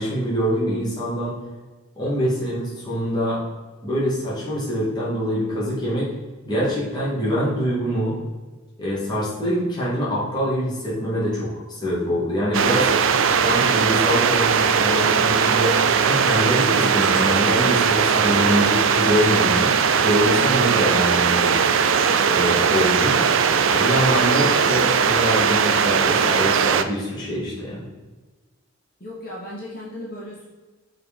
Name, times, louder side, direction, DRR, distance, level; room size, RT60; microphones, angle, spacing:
voice 1, 0.0-1.3 2.0-3.4 3.8-6.1 6.5-8.2 8.8-12.9 13.3-19.7 20.0-21.5 22.2-23.2 23.7-27.8, equal, 20° left, -8 dB, 2.3 m, -24 dB
sound 1, 12.5-26.8, right 6 dB, 65° right, 0.5 m, -19 dB
voice 2, 29.0-30.5, left 1 dB, 40° left, -6 dB, 2.2 m, -36 dB
6.4 x 4.8 x 5.4 m, 1.3 s
head